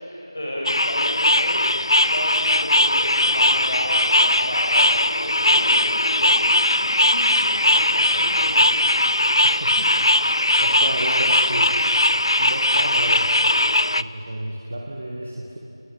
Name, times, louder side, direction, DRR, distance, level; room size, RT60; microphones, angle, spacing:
voice 1, 0.0-8.8, equal, 35° left, -2 dB, 4.8 m, -33 dB
sound 1, 0.7-14.0, left 1 dB, 85° left, 0.6 m, -19 dB
sound 2, 6.7-6.8 7.1-7.5 7.8-7.9 8.1-8.2 8.5-8.6 8.8-9.2 9.5-9.6 10.1-10.2 10.7-11.2 11.5-11.9 12.2-12.3 12.6-12.7 12.9-13.0 13.3-13.6 14.3-14.6, right 1 dB, 75° right, 5.2 m, -46 dB
voice 2, 9.4-11.9 12.4-13.4 14.0-15.6, right 1 dB, 15° right, -1 dB, 0.8 m, -32 dB
28.5 x 20.5 x 7.5 m, 2.8 s
figure-of-eight pair, 180°, 3 cm